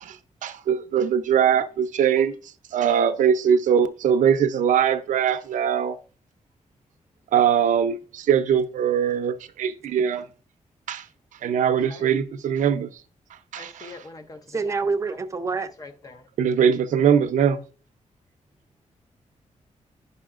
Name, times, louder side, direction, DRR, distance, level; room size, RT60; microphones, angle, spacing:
voice 1, 0.0-2.3 2.7-6.0 7.3-10.3 10.9-11.1 11.4-13.0 13.5-13.9 16.4-17.6, right 8 dB, 80° right, 0.5 m, -21 dB
voice 2, 11.8-12.1 13.6-14.8 15.1-15.2 15.8-16.3, left 3 dB, 30° left, 0.6 m, -43 dB
voice 3, 14.5-15.7, right 4 dB, 25° right, 0.5 m, -26 dB
11.0 x 5.5 x 2.4 m
wide cardioid pair, 175°, 13 cm